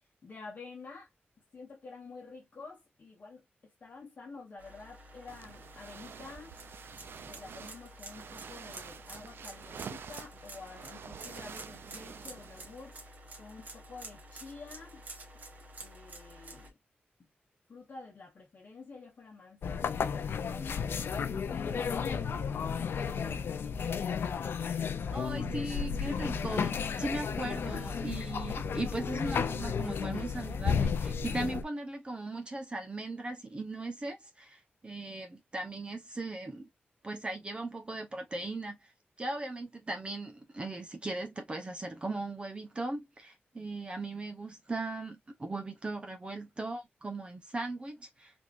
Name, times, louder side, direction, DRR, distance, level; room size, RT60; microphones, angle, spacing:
voice 1, 0.2-1.1 1.5-6.5 7.2-13.0 13.4-15.0 15.8-16.7 17.7-21.0 21.5-24.0, left 4 dB, 50° left, 1.0 m, -49 dB
sound 1, 4.6-16.7, right 1 dB, 50° right, 1.2 m, -50 dB
sound 2, 5.3-13.1, right 7 dB, 80° right, 0.3 m, -48 dB
sound 3, 19.6-31.6, left 6 dB, 85° left, 0.4 m, -33 dB
voice 2, 25.1-36.7 37.0-38.9 39.2-48.3, right 2 dB, 30° right, 0.8 m, -38 dB
3.5 x 2.9 x 2.4 m
wide cardioid pair, 140°, 4 cm